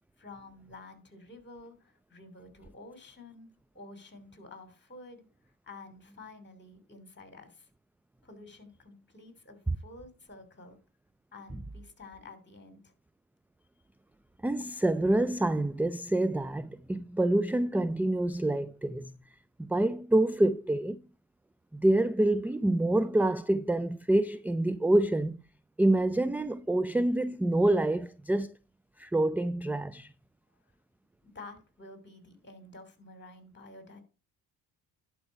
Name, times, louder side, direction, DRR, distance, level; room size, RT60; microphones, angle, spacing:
voice 1, 0.2-3.5 3.7-7.7 8.2-10.8 11.3-12.9 31.2-34.0, left 2 dB, 25° left, 3.1 m, -50 dB
voice 2, 14.4-19.1 19.6-21.0 21.7-25.4 25.8-28.5 29.0-30.1, right 1 dB, 5° right, 0.4 m, -27 dB
11.0 x 4.8 x 5.3 m
supercardioid pair, 65°, 42 cm